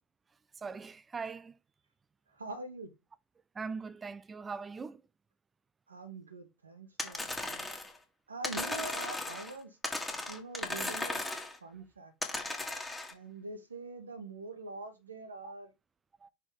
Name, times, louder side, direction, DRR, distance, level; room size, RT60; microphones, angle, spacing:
voice 1, 0.6-1.6 3.5-5.0 12.7-12.8 15.4-15.5 16.2-16.3, right 5 dB, 20° right, 0.5 m, -41 dB
voice 2, 2.3-2.9 5.9-7.6 8.3-9.8 10.3-11.2 11.6-12.1 13.1-15.7, right 3 dB, 80° right, 1.2 m, -44 dB
sound 1, 7.0-8.0 8.4-9.5 9.8-11.6 12.2-13.1, left 2 dB, 5° left, 1.8 m, -36 dB
6.0 x 4.3 x 3.8 m
figure-of-eight pair, 80°, 0 cm